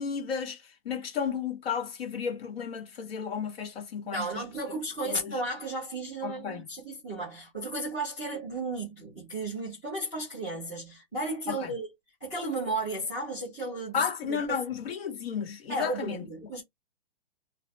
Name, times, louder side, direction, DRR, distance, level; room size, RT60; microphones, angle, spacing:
voice 1, 0.0-4.4 5.0-5.4 6.2-6.7 11.5-11.7 13.9-16.2, left 7 dB, 75° left, 1.3 m, -33 dB
voice 2, 4.1-11.9 12.2-14.6 15.7-16.6, right 2 dB, 5° left, 0.3 m, -34 dB
2.4 x 2.1 x 3.2 m
hypercardioid pair, 170°, 30 cm